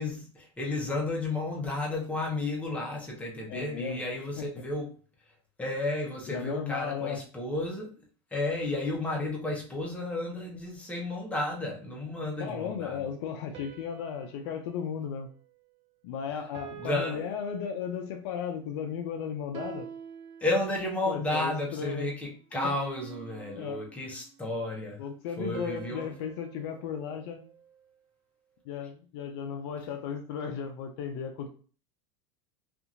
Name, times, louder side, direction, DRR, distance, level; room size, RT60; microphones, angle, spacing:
voice 1, 0.0-4.9 5.6-7.9 8.3-13.1 16.3-16.5 16.7-17.2 20.4-25.0 25.4-26.1, left 2 dB, 10° left, -1 dB, 0.8 m, -32 dB
voice 2, 3.5-4.0 4.4-4.5 6.3-7.2 12.4-15.3 16.0-19.9 21.1-22.1 23.5-23.8 25.0-27.4 28.7-31.5, left 7 dB, 65° left, 5 dB, 0.5 m, -35 dB
sound 1, 13.5-16.0 16.5-18.3 19.5-21.1 22.5-24.4 25.5-27.9, right 8 dB, 35° right, 0.4 m, -47 dB
2.7 x 2.5 x 2.5 m, 0.40 s
supercardioid pair, 115°, 15 cm